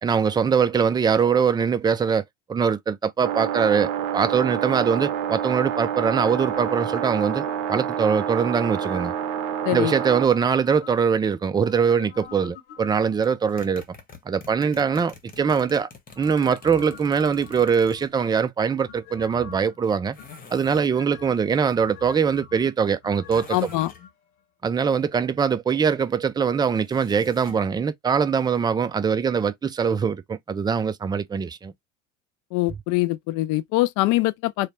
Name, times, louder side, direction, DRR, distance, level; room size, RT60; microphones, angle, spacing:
voice 1, 0.0-2.2 2.5-7.4 7.7-9.1 9.7-13.8 14.3-15.9 16.2-20.2 20.5-23.7 24.6-31.7, right 6 dB, 10° right, 0.4 m, -22 dB
sound 1, 3.2-10.3, right 9 dB, 55° right, 0.8 m, -28 dB
sound 2, 6.0-7.9 8.6-9.3 9.8-11.2 11.6-13.3 16.1-18.3 18.9-19.8 20.2-21.3 21.7-24.1 24.4-24.5, left 9 dB, 75° left, 0.9 m, -45 dB
sound 3, 13.2-18.3 20.1-21.0 23.3-24.0 26.7-27.7, left 4 dB, 20° left, 1.1 m, -47 dB
voice 2, 23.5-23.9 32.5-34.7, left 18 dB, 55° left, 0.5 m, -23 dB
3.2 x 2.1 x 4.1 m
hypercardioid pair, 85°, 38 cm